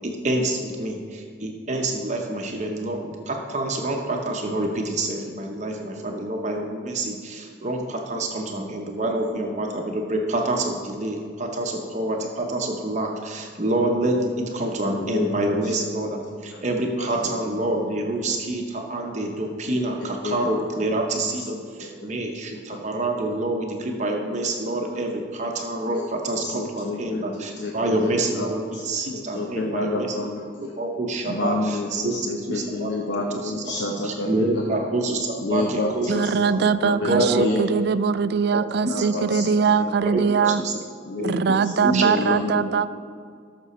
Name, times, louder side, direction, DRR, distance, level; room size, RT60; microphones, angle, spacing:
voice 1, 0.0-30.3 30.8-32.1 32.5-32.9 33.3-33.6 34.0-36.1 36.5-36.6 37.1-37.4 38.5-38.6 40.1-40.2 40.6-40.7 41.2-41.3 41.8-42.3, right 2 dB, 40° right, 2 dB, 0.8 m, -27 dB
voice 2, 15.0-15.3 15.6-15.7 16.5-16.6 17.0-17.3 17.7-17.8 20.0-20.4 21.5-21.6 21.8-21.9 22.4-22.5 25.9-26.1 26.4-27.7 28.0-28.5 28.7-30.4 31.3-34.8 35.4-37.8 38.9-39.8 40.4-40.5 41.0-42.6, left 2 dB, 65° left, 0 dB, 0.8 m, -29 dB
voice 3, 36.1-40.6 41.2-42.9, right 6 dB, 55° right, 15 dB, 0.3 m, -22 dB
13.5 x 6.0 x 4.2 m, 2.1 s
head